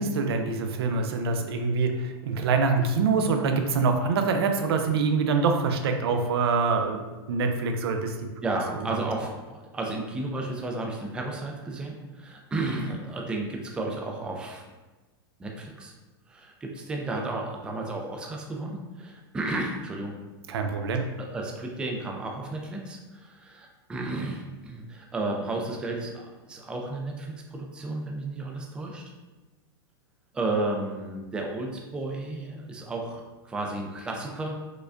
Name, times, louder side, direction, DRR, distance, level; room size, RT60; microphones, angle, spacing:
voice 1, 0.0-7.0 7.3-8.3 20.5-21.0, right 4 dB, 80° right, 5 dB, 0.5 m, -25 dB
voice 2, 8.4-14.7 15.4-15.9 16.3-20.1 21.2-29.1 30.3-34.6, right 2 dB, 5° right, 1 dB, 0.3 m, -33 dB
4.8 x 2.2 x 2.4 m, 1.2 s
supercardioid pair, 145°, 13 cm